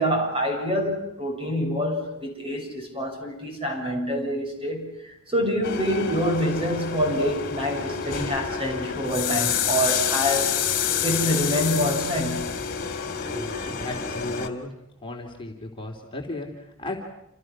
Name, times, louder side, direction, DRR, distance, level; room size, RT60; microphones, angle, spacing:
voice 1, 0.0-10.6 11.0-12.7 13.3-13.4, equal, 25° right, 2 dB, 6.5 m, -26 dB
sound 1, 5.6-14.5, left 7 dB, 45° left, 2.9 m, -28 dB
voice 2, 13.3-14.7 15.0-17.0, left 2 dB, 25° left, 1 dB, 3.4 m, -35 dB
29.0 x 29.0 x 6.3 m, 0.80 s
head